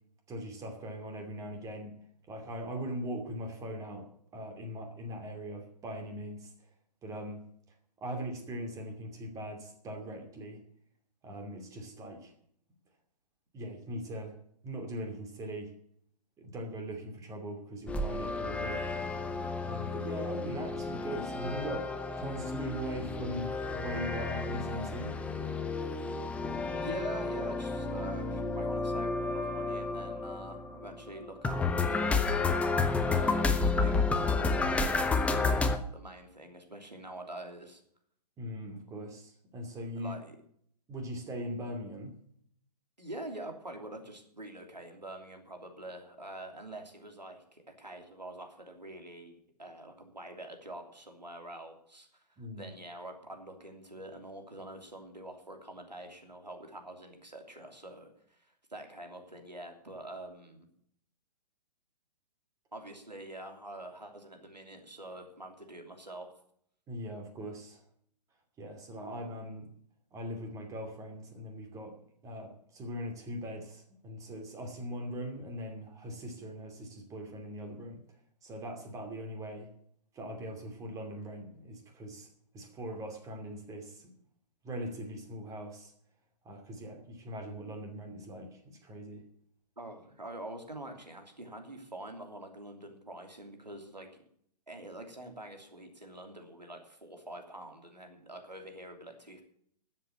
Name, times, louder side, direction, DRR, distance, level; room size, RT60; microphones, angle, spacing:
voice 1, 0.3-2.0 2.3-4.1 4.3-6.5 7.0-7.4 8.0-10.6 11.2-12.3 13.5-14.4 14.6-15.7 16.4-19.1 19.6-21.9 22.2-25.2 38.4-40.2 40.9-42.1 52.4-52.7 66.9-67.8 68.6-69.7 70.1-72.0 72.2-78.0 78.4-79.7 80.1-82.3 82.5-84.1 84.6-85.9 86.4-89.2, equal, 15° right, 4 dB, 2.6 m, -40 dB
sound 1, 17.9-35.8, left 3 dB, 5° left, 0.7 m, -31 dB
voice 2, 26.7-32.5 33.0-37.8 40.0-40.3 43.0-60.7 62.7-66.3 89.8-94.1 94.7-99.4, right 1 dB, 85° right, 4 dB, 3.0 m, -45 dB
13.0 x 7.6 x 8.1 m, 0.66 s
figure-of-eight pair, 125°, 21 cm